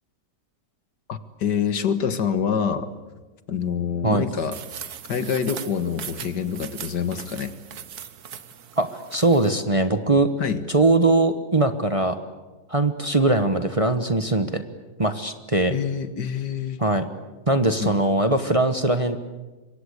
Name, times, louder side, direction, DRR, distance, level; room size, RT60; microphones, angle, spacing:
voice 1, 1.1-2.9 3.5-4.6 5.1-7.5 10.4-10.6 15.7-16.8 17.8-17.9, left 7 dB, 80° left, 11 dB, 2.1 m, -26 dB
sound 1, 4.5-9.5, right 8 dB, 65° right, 1.6 m, -39 dB
voice 2, 8.8-10.3 10.7-12.2 12.7-14.6 15.0-15.7 16.8-17.0 17.5-19.2, right 2 dB, 20° right, 8 dB, 1.1 m, -21 dB
26.0 x 23.5 x 8.2 m, 1.2 s
omnidirectional pair, 1.8 m